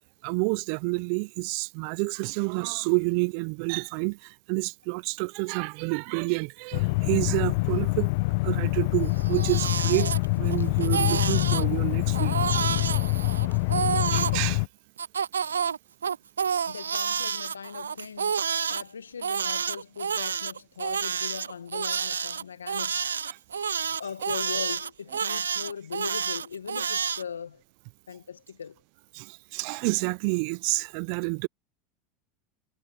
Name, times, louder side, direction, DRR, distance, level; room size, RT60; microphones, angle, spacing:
voice 1, 0.2-8.1 8.4-10.1 10.4-12.6 13.5-13.6 14.1-14.6 23.3-23.4 29.1-31.5, right 31 dB, 60° right, 0.7 m, -29 dB
sound 1, 6.7-14.7, left 27 dB, 65° left, 0.3 m, -25 dB
Crying sobbing, 9.1-10.6 10.8-11.7 12.1-14.4 15.0-18.8 19.2-27.2, right 7 dB, 90° right, 0.3 m, -29 dB
voice 2, 16.6-23.1 24.0-27.6 28.1-28.8, left 7 dB, 90° left, 1.5 m, -39 dB
hypercardioid pair, 85°, 0 cm